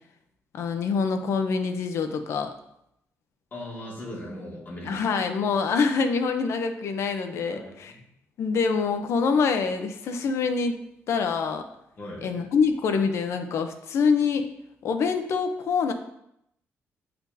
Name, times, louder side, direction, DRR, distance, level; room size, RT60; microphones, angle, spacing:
voice 1, 0.5-2.5 4.8-7.9 8.4-10.8 11.1-11.6 12.2-14.5 14.8-15.9, left 5 dB, 65° left, 7 dB, 0.7 m, -25 dB
voice 2, 3.5-5.0 7.5-8.0 12.0-12.3, left 1 dB, 40° left, -4 dB, 2.2 m, -39 dB
9.7 x 4.3 x 2.7 m, 0.79 s
cardioid pair, 155°, 5 cm